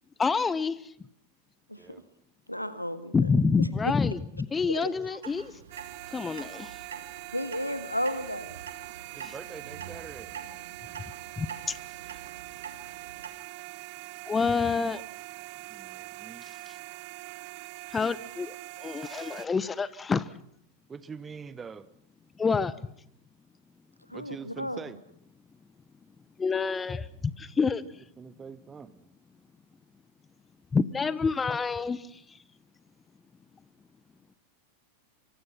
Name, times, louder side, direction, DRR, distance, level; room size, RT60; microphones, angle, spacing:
voice 1, 0.2-0.9 3.1-4.2 4.5-5.5 6.1-6.8 9.2-9.3 11.4-11.8 14.3-15.0 17.9-20.3 22.4-22.7 26.4-27.1 27.4-27.8 30.7-32.4, left 5 dB, 15° left, 1.0 m, -27 dB
voice 2, 1.7-2.0 2.5-3.3 3.6-3.9 4.7-4.9 7.3-8.6 24.1-24.8, equal, 90° left, 1.9 m, -33 dB
Clock, 5.2-13.3, right 6 dB, 70° right, 2.7 m, -46 dB
sound 1, 5.7-19.5, right 23 dB, 45° right, 0.9 m, -43 dB
voice 3, 9.1-10.3 15.7-16.5 20.9-21.9 24.1-25.0 28.2-29.1, right 6 dB, 20° right, 1.4 m, -44 dB
24.5 x 24.5 x 5.8 m
figure-of-eight pair, 90°, 0 cm